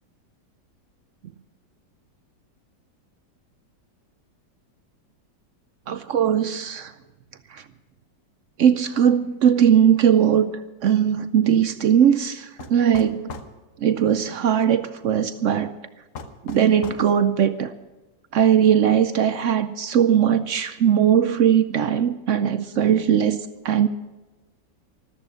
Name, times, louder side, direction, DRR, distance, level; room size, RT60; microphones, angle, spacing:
voice 1, 5.9-6.9 7.5-7.6 8.6-13.3 13.8-15.8 16.4-17.7 18.3-23.9, right 9 dB, 75° right, 0.7 m, -19 dB
sound 1, 12.6-13.5 16.1-17.1, left 4 dB, 50° left, 1.3 m, -38 dB
14.0 x 13.0 x 6.2 m
omnidirectional pair, 1.9 m